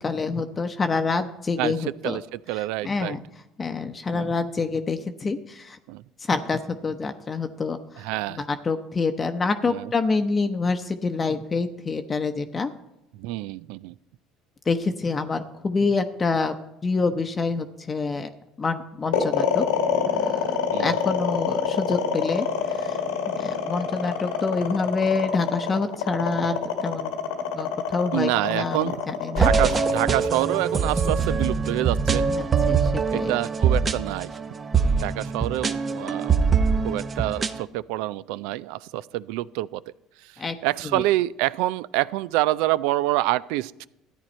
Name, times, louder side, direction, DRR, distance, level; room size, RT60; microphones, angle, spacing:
voice 1, 0.0-2.2 2.8-3.2 3.6-5.8 6.3-8.0 8.3-12.7 14.7-16.5 16.8-18.3 18.6-19.7 20.0-23.0 23.3-27.1 27.6-29.5 32.3-33.3 40.4-40.6 40.9-41.0, left 4 dB, 30° left, 7 dB, 0.8 m, -27 dB
voice 2, 2.0-3.2 4.1-4.3 5.9-6.0 8.0-8.4 9.6-9.9 13.1-13.9 20.7-21.0 28.1-29.0 29.3-32.3 33.1-34.3 35.0-36.3 36.8-39.8 40.2-43.9, right 16 dB, 75° right, 19 dB, 0.3 m, -27 dB
sound 1, 19.1-31.4, left 7 dB, 85° left, 1.6 m, -26 dB
sound 2, 29.4-37.6, right 5 dB, 35° right, 0.7 m, -23 dB
13.5 x 9.2 x 4.3 m, 0.86 s
hypercardioid pair, 75°, 0 cm